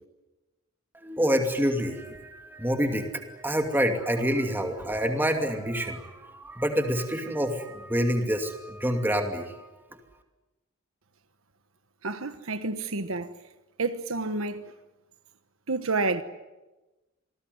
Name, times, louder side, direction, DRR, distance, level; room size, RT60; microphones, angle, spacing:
voice 1, 1.0-9.7, equal, 10° right, 2.6 m, -27 dB
voice 2, 12.0-13.3 13.8-14.7 15.7-16.2, right 3 dB, 70° right, 1.3 m, -29 dB
27.5 x 19.5 x 9.6 m
head